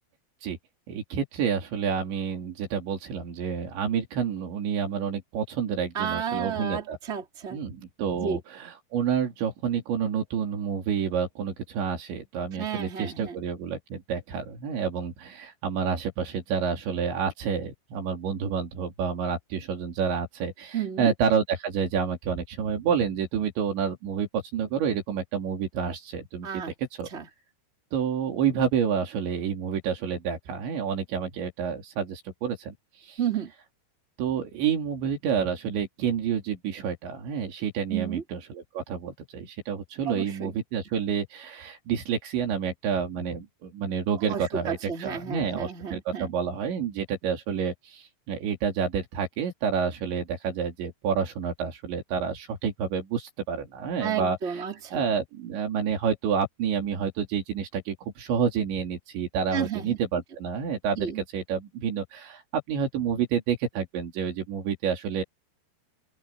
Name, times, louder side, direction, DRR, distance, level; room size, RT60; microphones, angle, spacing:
voice 1, 0.9-7.0 7.5-26.6 27.0-27.1 27.9-32.8 33.0-33.2 34.2-54.4 54.9-65.2, right 7 dB, 85° right, 5.6 m, -29 dB
voice 2, 5.9-7.6 8.2-8.4 12.6-13.4 20.7-21.1 26.4-26.7 27.1-27.3 33.2-33.5 37.9-38.2 40.0-40.5 44.3-46.3 54.0-55.0 59.5-60.0 60.9-61.2, right 7 dB, 20° right, 2.8 m, -32 dB
open air
omnidirectional pair, 5.0 m